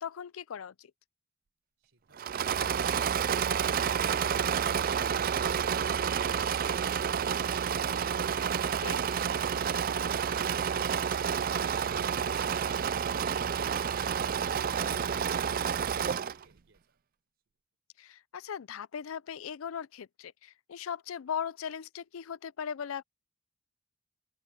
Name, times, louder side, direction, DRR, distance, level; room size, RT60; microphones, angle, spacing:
voice 1, 0.0-0.9 8.8-9.0 18.0-23.0, left 7 dB, 85° left, 0.5 m, -38 dB
voice 2, 1.8-1.9, right 3 dB, 70° right, 4.2 m, -65 dB
Engine / Mechanisms, 2.2-16.4, right 7 dB, 45° right, 0.4 m, -29 dB
open air
head